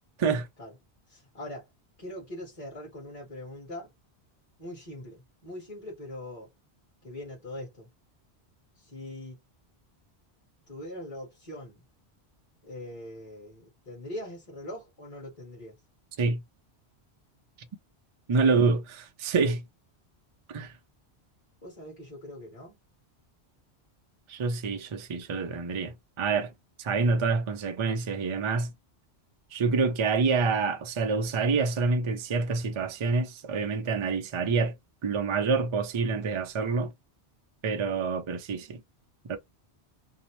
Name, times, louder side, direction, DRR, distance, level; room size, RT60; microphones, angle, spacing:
voice 1, 1.1-1.7 2.0-3.9 4.6-6.5 7.0-7.9 8.8-9.4 10.7-11.8 12.6-15.8 18.4-18.6 21.6-22.8, left 1 dB, 35° left, 1.3 m, -42 dB
voice 2, 18.3-19.6 20.5-20.7 24.3-26.5 26.8-28.7 29.5-34.7 35.0-36.9 37.6-38.8 39.3-39.4, right 4 dB, 55° right, 0.3 m, -27 dB
2.7 x 2.0 x 2.9 m
omnidirectional pair, 1.1 m